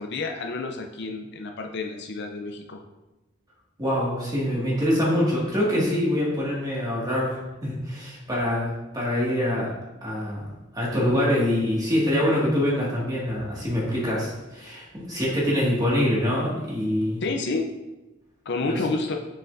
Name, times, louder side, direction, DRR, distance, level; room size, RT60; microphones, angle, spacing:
voice 1, 0.0-2.8 17.2-17.7 18.5-19.2, left 3 dB, 60° left, 4 dB, 0.6 m, -29 dB
voice 2, 3.8-9.7 10.0-10.4 10.7-17.2 18.6-18.7, left 1 dB, 20° right, -5 dB, 1.9 m, -25 dB
6.5 x 6.2 x 2.6 m, 1.0 s
head